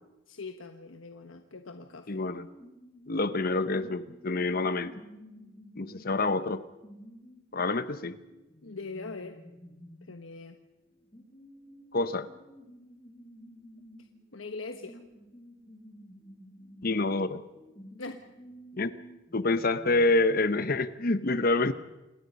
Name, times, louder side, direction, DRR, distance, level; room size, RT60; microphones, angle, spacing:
voice 1, 0.3-2.3 8.6-9.4 10.0-10.6 14.3-15.0 18.0-18.3, left 3 dB, 80° left, 6 dB, 1.2 m, -41 dB
voice 2, 2.1-2.5 3.1-4.9 5.8-6.6 7.5-8.2 11.9-12.3 16.8-17.4 18.8-18.9 19.3-21.7, left 2 dB, 50° left, 13 dB, 0.9 m, -27 dB
sound 1, 2.3-20.1, equal, 20° left, 5.7 m, -52 dB
28.0 x 20.5 x 5.4 m, 1.0 s
head